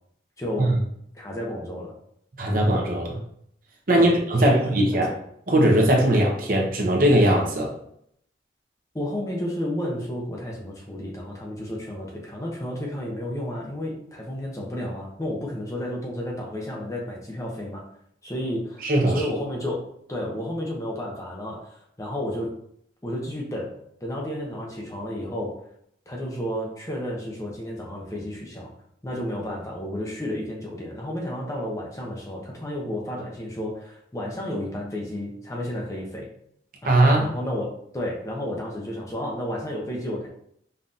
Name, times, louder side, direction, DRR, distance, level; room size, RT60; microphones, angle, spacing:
voice 1, 0.4-0.8 1.1-2.0 4.0-5.1 8.9-17.9 18.2-22.5 23.0-25.7 26.1-28.7 29.0-36.3 36.8-37.7 37.9-40.3, left 1 dB, 15° left, -2 dB, 0.7 m, -32 dB
voice 2, 2.4-3.2 3.9-5.1 5.5-7.7 18.8-19.2 36.8-37.3, right 1 dB, 50° right, -1 dB, 0.8 m, -20 dB
5.4 x 2.8 x 2.5 m, 0.70 s
head